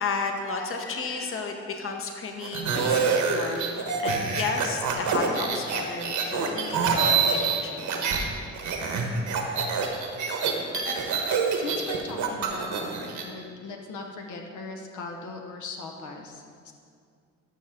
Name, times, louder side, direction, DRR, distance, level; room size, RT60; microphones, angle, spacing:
voice 1, 0.0-8.4, left 4 dB, 45° left, 3 dB, 1.0 m, -33 dB
sound 1, 2.4-8.2 8.5-13.2, right 5 dB, 75° right, 1.2 m, -26 dB
voice 2, 11.5-16.7, left 3 dB, 75° left, 2 dB, 1.0 m, -39 dB
13.0 x 5.8 x 3.6 m, 2.2 s
cardioid pair, 90°, 30 cm